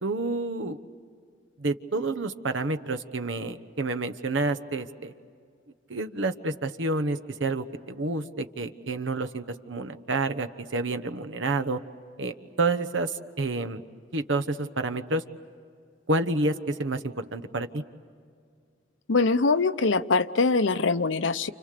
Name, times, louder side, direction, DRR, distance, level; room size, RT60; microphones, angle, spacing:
voice 1, 0.0-0.8 1.6-5.1 5.9-11.8 12.2-13.8 14.1-15.2 16.1-17.8, right 2 dB, 80° right, 7 dB, 1.1 m, -29 dB
voice 2, 19.1-21.5, left 4 dB, 80° left, 12 dB, 0.8 m, -23 dB
29.5 x 29.5 x 6.8 m, 2.2 s
head